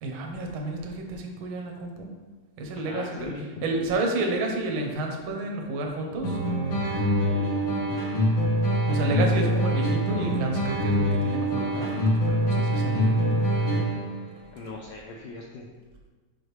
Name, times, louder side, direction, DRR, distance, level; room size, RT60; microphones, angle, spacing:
voice 1, 0.0-2.1 2.6-3.3 3.6-6.4 8.9-13.7, right 2 dB, 75° right, 2 dB, 1.2 m, -31 dB
voice 2, 2.8-3.6 7.3-8.3 14.5-15.7, left 3 dB, 75° left, -2 dB, 1.7 m, -41 dB
sound 1, 6.2-14.2, equal, 50° left, 1.4 m, -24 dB
6.4 x 5.3 x 3.1 m, 1.3 s
omnidirectional pair, 3.3 m